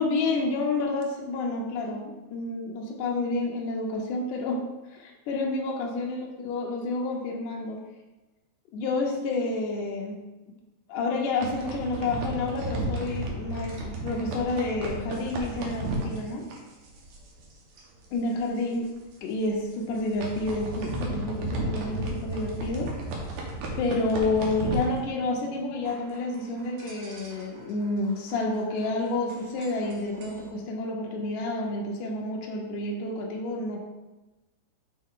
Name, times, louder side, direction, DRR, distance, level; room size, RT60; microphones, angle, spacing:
voice 1, 0.0-4.6 4.9-7.8 8.7-10.2 10.9-16.5 18.1-18.9 19.2-22.9 23.8-33.8, left 2 dB, 80° left, 0 dB, 1.8 m, -29 dB
sound 1, 11.2-17.5 17.8-18.1 18.3-18.4 19.0-19.2 19.8-25.6 25.8-30.5, right 2 dB, 80° right, 1.8 m, -34 dB
6.5 x 3.8 x 3.8 m, 1.1 s
omnidirectional pair, 4.8 m